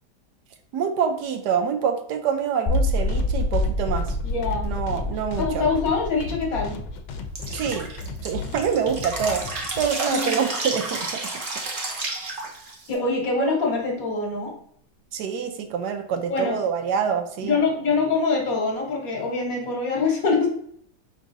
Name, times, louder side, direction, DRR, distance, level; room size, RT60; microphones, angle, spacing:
voice 1, 0.7-4.2 4.6-5.7 7.5-7.9 8.2-11.2 13.4-13.5 15.1-17.6, right 7 dB, 75° right, 6 dB, 1.1 m, -26 dB
sound 1, 2.7-9.8, left 4 dB, 85° left, 1.2 m, -36 dB
sound 2, 2.7-8.7, left 2 dB, 25° left, 0.8 m, -27 dB
voice 2, 4.2-4.7 5.4-6.8 10.1-10.5 12.9-14.5 16.3-16.6 17.4-20.5, left 4 dB, 55° left, 0 dB, 1.5 m, -24 dB
Drip, 7.4-12.9, right 2 dB, 45° right, 0.7 m, -31 dB
4.7 x 4.0 x 2.6 m, 0.65 s
omnidirectional pair, 1.9 m